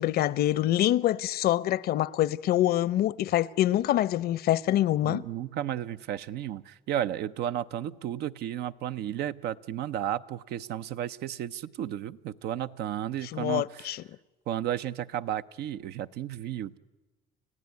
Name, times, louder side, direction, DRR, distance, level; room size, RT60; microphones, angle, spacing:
voice 1, 0.0-5.2 13.3-14.0, left 13 dB, 65° left, 0.7 m, -25 dB
voice 2, 5.0-13.9 14.5-16.8, right 11 dB, 75° right, 0.7 m, -33 dB
29.5 x 16.0 x 9.6 m
cardioid pair, 110°, 17 cm